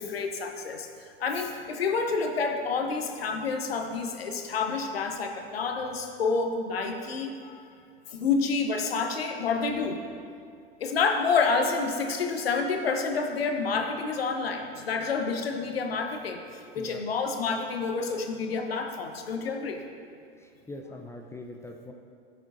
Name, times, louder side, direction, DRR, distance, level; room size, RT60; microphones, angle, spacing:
voice 1, 0.0-7.6 8.1-10.0 10.8-16.4 16.7-19.8, left 4 dB, 80° left, 5 dB, 0.9 m, -29 dB
voice 2, 20.4-21.9, left 2 dB, 10° left, 3 dB, 0.6 m, -42 dB
14.5 x 6.6 x 2.6 m, 2.3 s
figure-of-eight pair, 80°, 30 cm